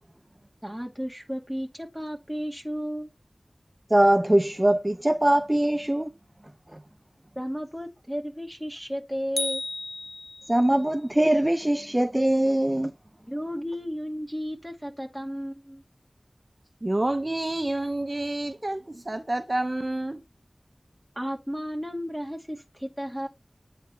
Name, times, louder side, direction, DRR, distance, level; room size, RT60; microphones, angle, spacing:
voice 1, 0.6-3.1 7.4-9.6 13.2-15.8 21.2-23.3, equal, 5° right, 2.1 m, -33 dB
voice 2, 3.9-6.1 10.5-12.9, right 1 dB, 20° right, 0.5 m, -22 dB
sound 1, 9.4-10.8, left 2 dB, 65° left, 0.3 m, -33 dB
voice 3, 16.8-20.2, right 1 dB, 40° right, 0.9 m, -28 dB
8.6 x 4.0 x 4.3 m
wide cardioid pair, 50°, 0 cm